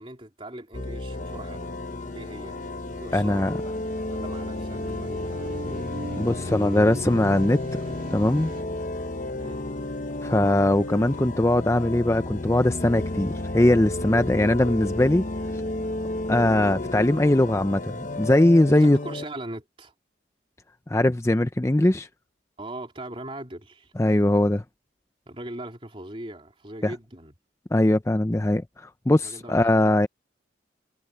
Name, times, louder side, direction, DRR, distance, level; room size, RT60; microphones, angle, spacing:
voice 1, 0.0-1.8 2.1-2.6 3.0-3.5 4.1-6.0 9.4-9.7 18.7-19.9 22.6-23.9 25.2-27.3 29.2-30.1, right 1 dB, 30° right, 3.4 m, -40 dB
sound 1, 0.7-19.3, left 2 dB, 45° left, 0.9 m, -32 dB
sound 2, 1.5-8.6, right 1 dB, 45° right, 2.3 m, -42 dB
voice 2, 3.1-3.5 6.2-7.8 8.1-8.5 10.2-15.2 16.3-19.0 20.9-22.1 24.0-24.6 26.8-26.9 27.7-30.1, left 1 dB, 15° left, 0.5 m, -21 dB
head